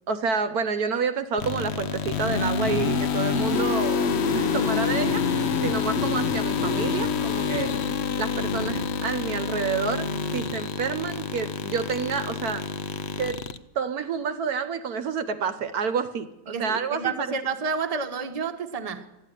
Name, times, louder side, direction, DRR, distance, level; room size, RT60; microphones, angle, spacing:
voice 1, 0.1-12.6 13.2-13.4 13.7-17.0, right 6 dB, 65° right, 1.2 m, -29 dB
sound 1, 1.4-13.6, left 6 dB, 55° left, 0.8 m, -27 dB
voice 2, 16.5-19.1, right 5 dB, 25° right, 1.1 m, -30 dB
13.0 x 11.0 x 9.9 m
omnidirectional pair, 1.8 m